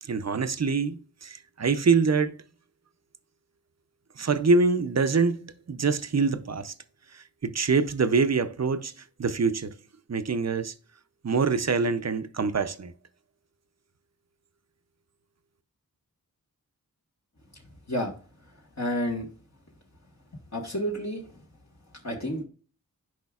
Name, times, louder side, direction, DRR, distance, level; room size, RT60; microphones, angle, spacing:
voice 1, 0.0-2.3 4.2-5.4 5.7-6.7 7.1-8.9 9.2-9.7 10.1-10.7 11.2-12.9, right 4 dB, 50° right, 0.6 m, -25 dB
voice 2, 18.8-19.3 20.5-21.2 22.0-22.4, equal, 50° left, 1.3 m, -29 dB
10.5 x 4.9 x 2.4 m
wide cardioid pair, 60°, 35 cm